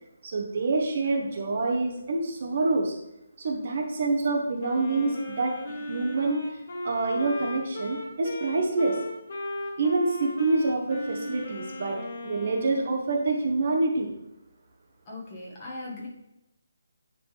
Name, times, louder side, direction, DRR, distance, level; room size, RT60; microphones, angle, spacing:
voice 1, 0.2-2.9 3.4-6.4 6.8-9.0 9.8-14.1, right 3 dB, 40° right, 2 dB, 1.0 m, -27 dB
Wind instrument woodwind instrument, 4.6-13.1, left 1 dB, 40° left, 1.3 m, -37 dB
voice 2, 15.1-16.1, left 2 dB, 20° left, -5 dB, 1.6 m, -39 dB
10.5 x 3.9 x 3.3 m, 0.89 s
hypercardioid pair, 175°, 0 cm